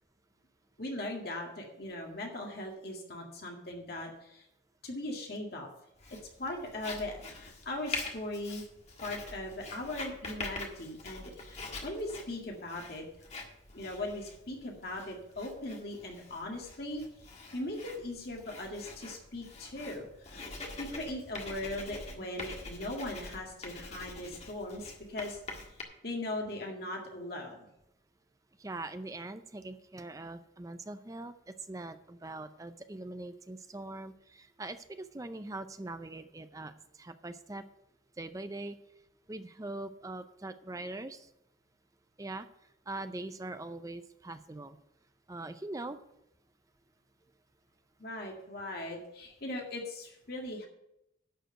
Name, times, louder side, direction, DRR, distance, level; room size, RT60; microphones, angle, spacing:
voice 1, 0.8-4.4 4.8-5.7 6.4-8.6 9.0-13.1 13.7-17.1 17.5-20.4 20.8-25.4 25.7-25.8 26.0-27.7 48.0-50.7, left 1 dB, 55° left, 0 dB, 2.0 m, -39 dB
Writing, 6.0-25.8, left 3 dB, 35° left, 1.7 m, -45 dB
voice 2, 28.6-31.3 31.7-36.7 37.0-37.6 38.2-38.8 39.3-41.3 42.2-42.5 42.9-44.8 45.3-46.0, right 2 dB, 20° right, 10 dB, 0.5 m, -42 dB
11.0 x 5.0 x 7.9 m, 0.82 s
head